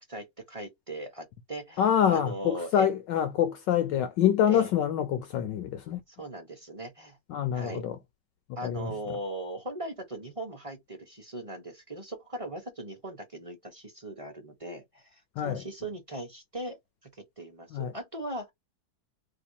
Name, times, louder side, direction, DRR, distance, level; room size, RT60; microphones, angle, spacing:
voice 1, 0.1-3.0 4.5-4.7 6.1-7.2 7.5-7.9 8.6-18.5, right 1 dB, 25° right, 0.8 m, -39 dB
voice 2, 1.8-6.0 7.3-8.0 8.6-9.2 15.4-15.6 17.7-17.9, left 9 dB, 70° left, 1.2 m, -26 dB
4.3 x 2.7 x 2.3 m
omnidirectional pair, 2.2 m